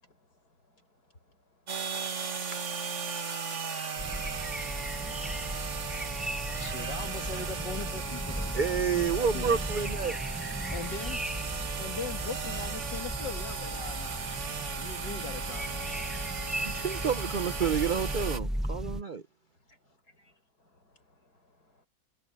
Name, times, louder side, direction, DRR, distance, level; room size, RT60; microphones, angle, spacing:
sound 1, 1.7-18.4, right 5 dB, 45° right, 1.8 m, -36 dB
sound 2, 4.0-19.0, equal, ahead, 0.3 m, -37 dB
voice 1, 6.6-8.9 9.2-9.6 10.7-11.2 11.8-16.1, left 5 dB, 80° left, 2.5 m, -41 dB
voice 2, 8.5-10.2 16.6-19.2, right 6 dB, 65° right, 0.5 m, -29 dB
voice 3, 20.6-21.9, left 2 dB, 60° left, 6.6 m, -64 dB
omnidirectional pair, 1.9 m